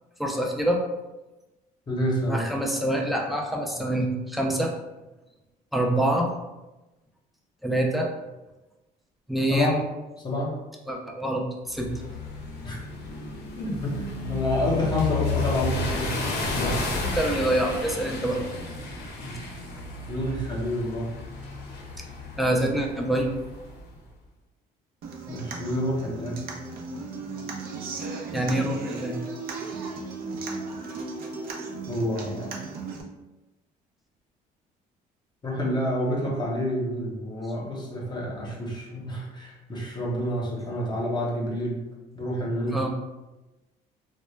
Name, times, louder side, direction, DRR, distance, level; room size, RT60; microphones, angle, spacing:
voice 1, 0.2-0.8 2.3-4.7 5.7-6.3 7.6-8.1 9.3-9.8 10.9-11.9 17.0-18.4 22.4-23.3 28.3-29.2 42.7-42.9, right 1 dB, ahead, 0 dB, 0.4 m, -26 dB
voice 2, 1.9-2.5 9.5-9.8 10.2-10.5 12.6-12.8 13.5-16.1 16.5-16.8 19.2-19.5 20.1-21.1 25.3-26.4 31.9-32.5 35.4-41.8 42.1-42.8, left 1 dB, 25° left, -3 dB, 0.7 m, -28 dB
Car driving through a ford, 11.7-23.9, left 3 dB, 75° left, 0.6 m, -32 dB
Human voice / Acoustic guitar, 25.0-33.0, right 3 dB, 60° right, 0.5 m, -36 dB
2.1 x 2.1 x 3.2 m, 1.1 s
cardioid pair, 110°, 17 cm